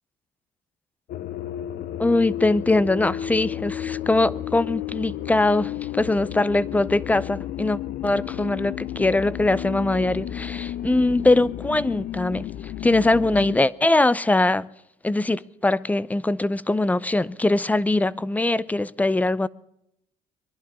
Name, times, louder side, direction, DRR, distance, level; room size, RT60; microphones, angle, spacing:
sound 1, 1.1-13.6, left 12 dB, 65° left, 0.8 m, -32 dB
voice 1, 2.0-14.7 15.0-19.5, left 2 dB, 10° left, 0.5 m, -22 dB
23.5 x 11.5 x 5.5 m
cardioid pair, 110°, 17 cm